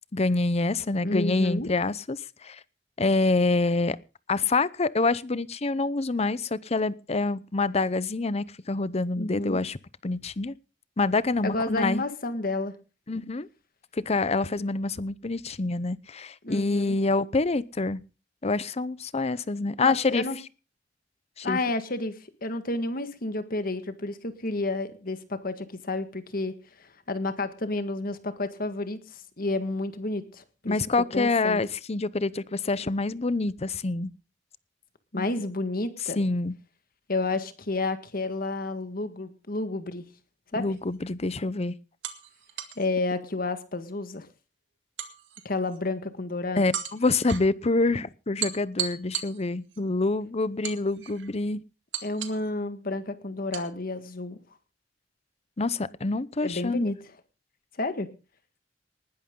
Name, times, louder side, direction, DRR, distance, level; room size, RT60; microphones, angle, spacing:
voice 1, 0.1-2.6 3.0-4.0 4.3-9.8 10.0-10.5 11.0-12.0 13.1-13.5 13.9-18.0 18.4-20.2 21.4-21.6 30.7-34.1 35.2-35.3 36.2-36.5 40.6-41.7 46.6-51.6 55.6-57.0, left 3 dB, 35° left, 18 dB, 0.7 m, -26 dB
voice 2, 1.0-1.7 9.2-9.6 11.4-12.8 16.4-17.0 19.8-20.4 21.4-22.1 22.4-30.8 31.1-31.6 35.1-36.2 37.1-40.0 40.5-40.6 42.8-44.3 45.5-46.6 52.0-54.4 56.4-57.0 57.8-58.1, left 2 dB, 50° left, 10 dB, 1.7 m, -30 dB
sound 1, 40.7-41.0 42.0-42.9 45.0-45.8 46.7-47.5 48.4-49.8 50.6-51.3 51.9-52.5 53.5-53.7, right 9 dB, 85° right, 2.0 m, -36 dB
19.5 x 11.5 x 3.8 m, 0.33 s
head